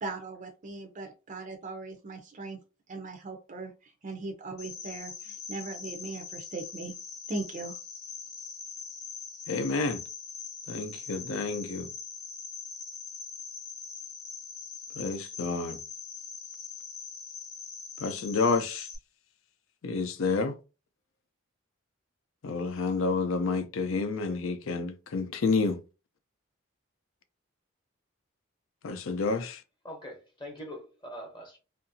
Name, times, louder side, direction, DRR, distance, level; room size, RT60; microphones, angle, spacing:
voice 1, 0.0-2.6 2.9-6.9 7.3-7.8, right 3 dB, 35° right, 0.4 m, -39 dB
Cricket, 4.6-19.0, left 5 dB, 90° left, 1.0 m, -42 dB
voice 2, 9.5-10.0 10.7-11.9 15.0-15.8 18.0-18.9 19.8-20.5 22.4-25.8 28.8-29.6, left 4 dB, 65° left, 0.5 m, -29 dB
voice 3, 29.8-31.6, equal, 20° left, 0.8 m, -43 dB
2.7 x 2.5 x 2.6 m
head